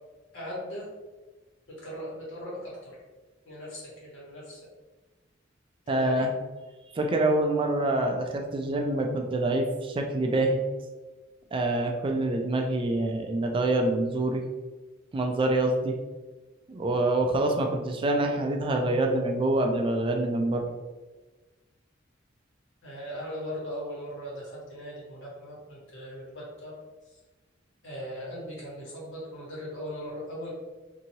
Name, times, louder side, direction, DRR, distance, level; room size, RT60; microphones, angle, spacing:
voice 1, 0.3-0.9 1.8-3.0 3.4-4.6 5.9-6.3 22.8-26.7 27.1-27.2 27.8-30.5, equal, 75° left, -6 dB, 1.3 m, -39 dB
voice 2, 5.9-6.3 6.9-10.6 11.5-14.4 15.1-16.0 16.7-20.6, right 2 dB, 25° right, 2 dB, 0.3 m, -26 dB
2.8 x 2.7 x 2.7 m, 1.2 s
head